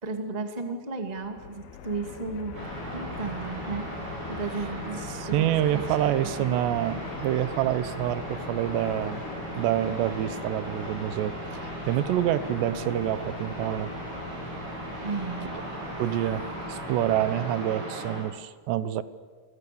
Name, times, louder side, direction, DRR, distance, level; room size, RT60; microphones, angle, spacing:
voice 1, 0.0-2.6 2.9-3.9 4.3-6.6 12.1-12.2 15.0-15.5, right 4 dB, 25° right, 5 dB, 0.8 m, -34 dB
Fixed-wing aircraft airplane, 1.1-17.5, left 7 dB, 65° left, 3.1 m, -42 dB
sound 1, 2.5-18.2, right 1 dB, 60° right, 9.5 m, -37 dB
voice 2, 5.1-9.2 9.6-13.9 16.0-19.0, right 12 dB, 80° right, 15 dB, 3.0 m, -27 dB
30.0 x 24.0 x 6.9 m, 1.5 s
omnidirectional pair, 5.1 m